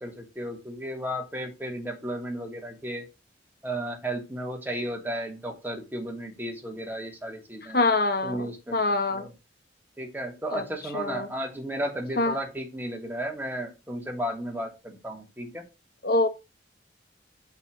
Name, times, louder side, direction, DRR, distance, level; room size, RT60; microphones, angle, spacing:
voice 1, 0.0-3.1 3.6-7.8 8.2-8.8 9.1-9.3 10.0-15.6, right 1 dB, 10° right, 2.8 m, -34 dB
voice 2, 7.7-9.2 10.5-10.6 10.9-11.3 12.2-12.3 16.0-16.3, left 2 dB, 55° left, 1.6 m, -25 dB
7.5 x 6.1 x 6.2 m
head